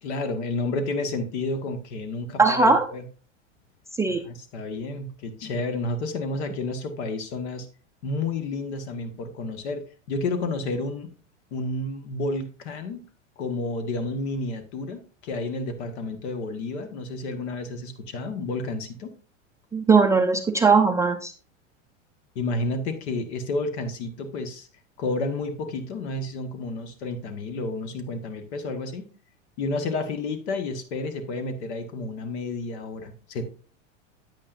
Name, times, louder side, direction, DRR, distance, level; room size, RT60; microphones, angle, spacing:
voice 1, 0.0-3.0 4.1-7.7 8.0-11.1 11.5-13.0 13.4-19.1 22.3-24.7 25.0-29.1 29.6-33.5, left 2 dB, 60° left, 8 dB, 1.7 m, -31 dB
voice 2, 2.4-2.9 4.0-4.2 19.7-21.3, right 4 dB, 10° right, 4 dB, 0.4 m, -19 dB
8.8 x 8.7 x 2.6 m, 0.38 s
hypercardioid pair, 105°, 38 cm